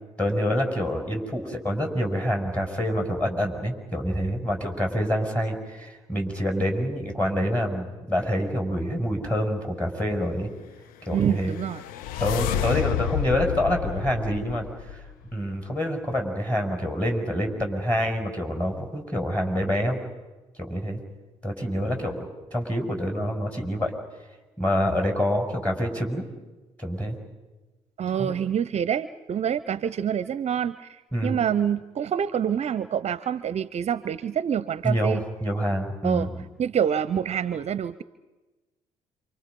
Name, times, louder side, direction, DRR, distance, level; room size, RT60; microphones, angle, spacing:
voice 1, 0.2-10.5 11.1-11.5 12.2-15.0 15.3-20.0 20.6-21.0 21.4-23.9 24.6-26.3 26.8-27.2 28.2-28.4 31.1-31.4 34.8-36.4, equal, 10° left, 3 dB, 6.1 m, -27 dB
voice 2, 11.1-11.8 28.0-35.2 36.0-36.3 36.6-38.0, right 8 dB, 45° right, 16 dB, 0.7 m, -26 dB
sound 1, 11.2-15.4, left 12 dB, 70° left, 0.7 m, -30 dB
28.0 x 26.5 x 5.4 m, 1.2 s
hypercardioid pair, 50°, 15 cm